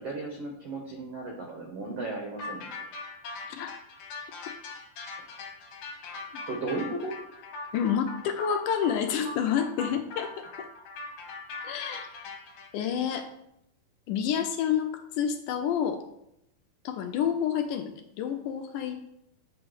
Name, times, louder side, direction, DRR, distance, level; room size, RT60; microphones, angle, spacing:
voice 1, 0.0-2.7 5.2-5.3 6.5-7.2, right 2 dB, 85° right, 1 dB, 1.3 m, -35 dB
sound 1, 2.4-12.7, left 3 dB, 65° left, 2.2 m, -40 dB
voice 2, 3.5-3.8 6.3-6.4 7.7-10.7 11.6-12.1 12.7-13.3 14.1-16.0 16.9-19.0, left 8 dB, 80° left, 6 dB, 1.9 m, -29 dB
8.1 x 3.0 x 6.2 m, 0.79 s
omnidirectional pair, 4.2 m